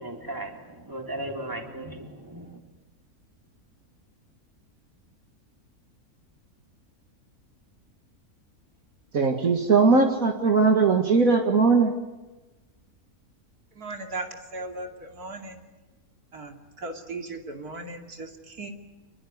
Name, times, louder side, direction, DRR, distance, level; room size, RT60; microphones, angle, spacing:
voice 1, 0.0-2.6, right 1 dB, 15° right, 2 dB, 3.8 m, -36 dB
voice 2, 9.1-11.9, right 4 dB, 65° right, 3 dB, 2.3 m, -20 dB
voice 3, 13.7-15.6 16.3-18.7, right 2 dB, 90° right, 3 dB, 3.2 m, -37 dB
27.5 x 21.5 x 9.6 m, 1.1 s
omnidirectional pair, 1.6 m